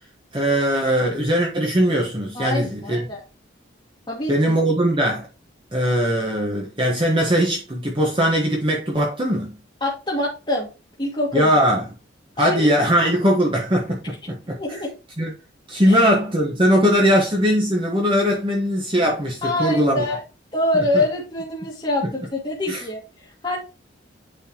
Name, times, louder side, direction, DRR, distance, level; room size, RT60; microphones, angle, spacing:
voice 1, 0.3-3.1 4.3-5.3 5.7-9.6 11.3-11.9 12.4-14.8 15.2-15.3 15.7-20.0 20.7-21.0 22.0-22.1 22.7-22.8, equal, 25° right, 1.4 m, -20 dB
voice 2, 2.3-3.2 4.1-4.6 9.8-10.7 11.0-11.6 12.4-12.7 14.6-14.9 15.9-16.0 19.4-20.2 20.5-23.6, left 2 dB, 25° left, 1.8 m, -25 dB
9.0 x 4.6 x 3.0 m
head